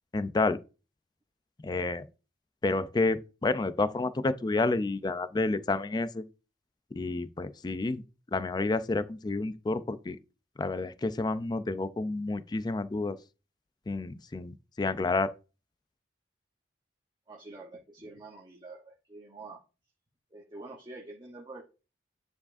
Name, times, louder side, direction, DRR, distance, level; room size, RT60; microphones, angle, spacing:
voice 1, 0.1-0.6 1.6-2.1 2.6-6.2 7.0-8.0 8.3-10.2 10.6-13.2 13.9-15.3, left 3 dB, 25° left, 0.4 m, -29 dB
voice 2, 17.3-19.6 20.3-21.6, right 2 dB, 25° right, 1.0 m, -46 dB
9.4 x 4.7 x 2.5 m
head